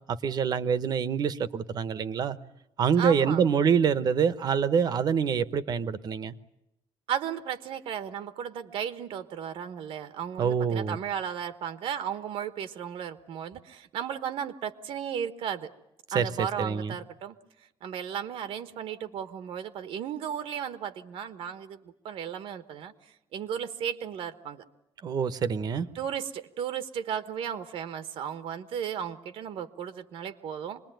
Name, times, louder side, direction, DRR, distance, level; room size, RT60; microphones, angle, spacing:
voice 1, 0.1-2.4 2.8-6.3 10.4-11.0 16.1-16.9 25.0-25.9, right 7 dB, 45° right, 14 dB, 0.9 m, -26 dB
voice 2, 3.0-3.4 7.1-15.7 16.1-17.3 17.8-22.9 23.3-24.6 25.9-30.8, right 8 dB, 75° right, 10 dB, 1.2 m, -35 dB
26.0 x 20.5 x 9.2 m, 0.87 s
cardioid pair, 170°, 10 cm